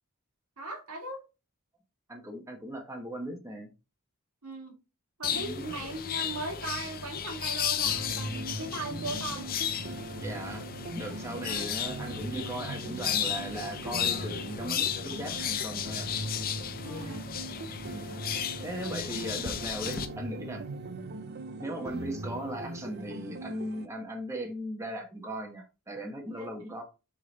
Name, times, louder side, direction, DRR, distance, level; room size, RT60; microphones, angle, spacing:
voice 1, 0.6-1.2 4.4-4.8 5.2-9.5 11.5-11.6 16.8-17.2 26.3-26.5, right 2 dB, 85° right, 2.0 m, -38 dB
voice 2, 2.1-3.7 5.3-5.7 10.2-10.7 10.9-16.1 17.9-20.6 21.6-26.8, right 1 dB, 15° right, 1.1 m, -38 dB
sound 1, 5.2-20.1, left 9 dB, 40° left, 0.6 m, -34 dB
sound 2, 7.9-23.9, right 2 dB, 45° right, 0.6 m, -40 dB
6.3 x 3.8 x 4.0 m
head